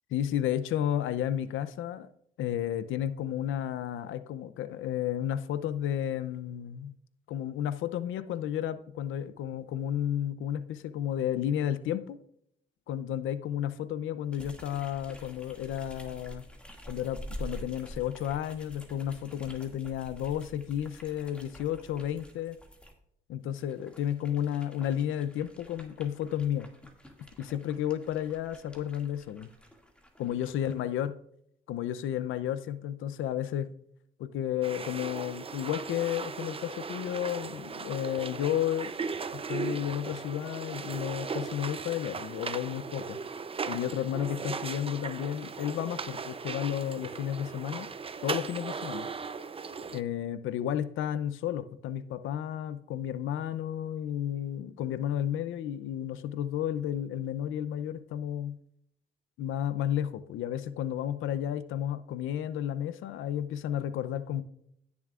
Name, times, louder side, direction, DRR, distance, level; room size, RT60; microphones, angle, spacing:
voice 1, 0.1-2.1 2.4-6.9 7.3-12.2 12.9-16.4 16.9-22.6 23.3-26.7 27.4-29.5 30.2-31.1 31.7-33.7 34.2-38.9 39.3-43.2 43.7-47.9 48.2-49.1 49.9-58.6 59.4-64.4, left 10 dB, 80° left, 13 dB, 0.6 m, -32 dB
sound 1, 14.3-22.9 23.5-30.8, equal, 5° left, 2.2 m, -48 dB
sound 2, 34.6-50.0, right 5 dB, 30° right, 0.6 m, -37 dB
17.0 x 7.1 x 2.5 m, 0.71 s
cardioid pair, 90°, 20 cm